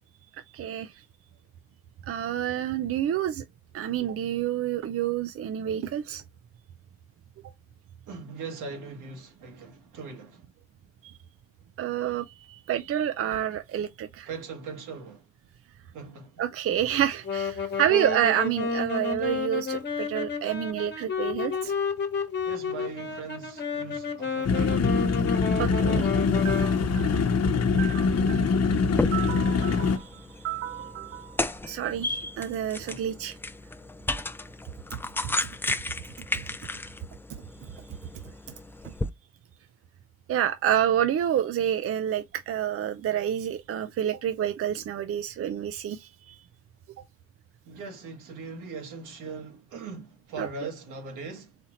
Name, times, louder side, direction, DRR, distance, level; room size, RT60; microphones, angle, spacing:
voice 1, 0.5-0.9 2.1-3.4 3.7-6.2 11.8-14.3 16.4-21.7 25.6-26.2 26.4-27.2 27.8-28.6 29.1-31.4 31.6-33.4 40.3-46.4 50.4-50.7, right 10 dB, 50° right, 0.5 m, -29 dB
voice 2, 8.1-10.4 14.3-15.3 15.9-16.4 17.7-17.8 22.4-24.9 32.8-33.1 47.6-51.6, right 4 dB, 80° right, 1.6 m, -40 dB
Wind instrument woodwind instrument, 17.2-26.8, left 5 dB, 35° left, 1.3 m, -31 dB
sound 1, 24.4-30.0, left 4 dB, 55° left, 0.9 m, -24 dB
sound 2, 28.7-39.1, left 2 dB, 10° left, 0.3 m, -34 dB
4.3 x 2.9 x 3.8 m
cardioid pair, 90°, 30 cm